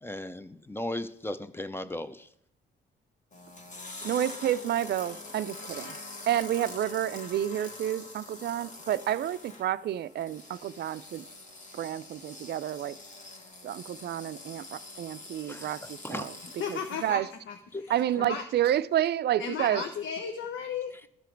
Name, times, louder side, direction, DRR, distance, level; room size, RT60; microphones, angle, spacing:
voice 1, 0.0-2.3 15.4-16.3 17.7-17.8, left 1 dB, 10° left, 12 dB, 0.6 m, -37 dB
sound 1, 3.3-17.1, left 2 dB, 40° left, 1.5 m, -45 dB
voice 2, 4.0-6.0 6.3-11.2 11.8-13.0 13.6-16.3 16.7-17.3 17.9-19.8, right 11 dB, 55° right, 16 dB, 0.4 m, -30 dB
voice 3, 16.6-18.4 19.4-21.1, left 6 dB, 70° left, 6 dB, 0.8 m, -35 dB
13.0 x 4.9 x 4.5 m, 0.71 s
cardioid pair, 90°, 20 cm